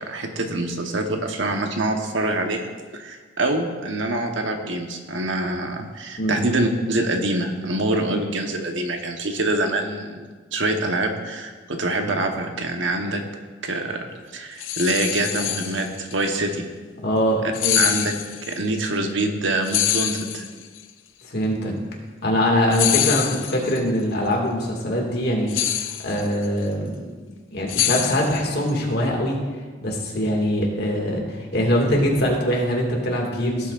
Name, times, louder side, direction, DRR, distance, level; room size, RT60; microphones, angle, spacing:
voice 1, 0.0-10.2 10.5-13.2 13.6-14.0 14.3-16.6 17.7-18.1 18.4-20.4, right 2 dB, 70° right, 4 dB, 1.2 m, -25 dB
sound 1, 14.6-16.1 17.5-18.6 19.6-20.8 22.7-23.8 25.5-26.5 27.7-28.7, left 11 dB, 85° left, 0.6 m, -25 dB
voice 2, 17.0-17.9 21.2-21.7 22.2-25.5 26.0-27.1 27.5-29.4 29.8-33.7, equal, 55° left, -1 dB, 2.1 m, -23 dB
17.0 x 8.2 x 2.5 m, 1.4 s
head